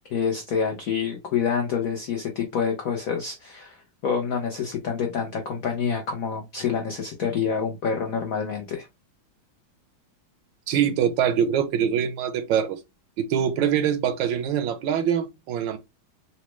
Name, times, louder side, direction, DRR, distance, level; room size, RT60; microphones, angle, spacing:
voice 1, 0.1-8.9, left 6 dB, 90° left, 0.7 m, -27 dB
voice 2, 10.7-12.8 13.2-15.8, right 8 dB, 75° right, 1.1 m, -24 dB
4.1 x 2.1 x 3.0 m
omnidirectional pair, 2.3 m